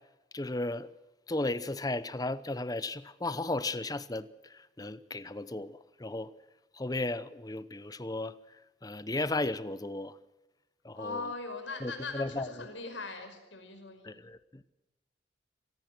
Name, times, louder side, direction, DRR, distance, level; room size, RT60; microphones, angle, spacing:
voice 1, 0.3-0.9 1.3-6.3 6.7-8.3 8.8-10.2 10.8-11.3 11.8-12.5 14.0-14.7, left 2 dB, 20° left, 0.8 m, -35 dB
voice 2, 10.9-14.1, left 3 dB, 80° left, 5.8 m, -40 dB
25.5 x 19.0 x 6.1 m
head